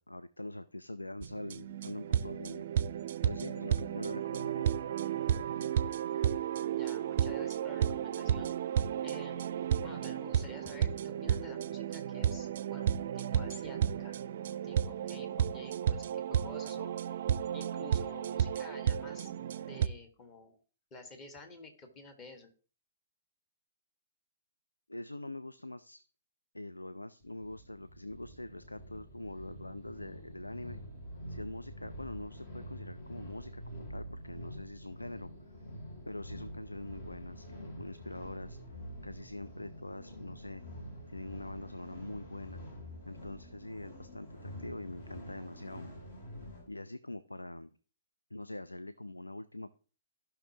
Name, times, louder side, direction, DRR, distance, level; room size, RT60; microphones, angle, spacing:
voice 1, 0.0-2.7 3.2-4.7 24.9-26.0 26.5-30.8 31.3-35.3 36.1-38.6 39.0-40.6 41.1-42.6 43.1-45.9 46.7-47.7 48.3-49.8, left 2 dB, 85° left, 13 dB, 0.4 m, -44 dB
sound 1, 1.2-19.9, right 9 dB, 50° right, 0.4 m, -33 dB
voice 2, 6.7-8.5 9.0-14.2 14.6-16.9 17.5-19.3 19.6-20.6 20.9-22.5, left 3 dB, 25° left, 6 dB, 1.6 m, -51 dB
sound 2, 27.2-46.7, equal, 50° left, 2.7 m, -47 dB
15.5 x 5.8 x 2.9 m, 0.39 s
figure-of-eight pair, 115°, 0 cm